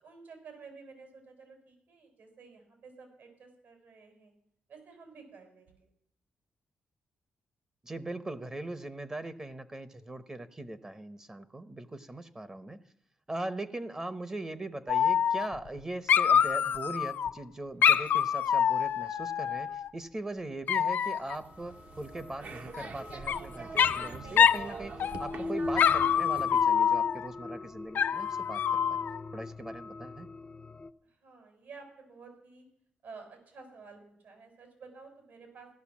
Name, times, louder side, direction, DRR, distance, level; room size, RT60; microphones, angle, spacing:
voice 1, 0.0-4.3 4.7-5.9 31.2-32.6 33.0-35.7, right 4 dB, 80° right, 4 dB, 5.8 m, -51 dB
voice 2, 7.8-12.8 13.3-29.0 29.3-30.3, right 2 dB, 20° right, 13 dB, 0.9 m, -40 dB
Dog, 14.9-15.8 16.1-17.3 17.8-19.9 20.7-21.4 22.7-23.4 23.8-24.1 24.4-24.7 25.0-25.4 25.8-27.3 28.0-29.2, left 8 dB, 70° left, 0.6 m, -26 dB
sound 1, 21.3-26.7, right 4 dB, 55° right, 1.1 m, -44 dB
sound 2, 21.4-30.9, left 2 dB, 25° left, 0.6 m, -41 dB
15.5 x 12.5 x 7.3 m, 0.73 s
cardioid pair, 120°, 3 cm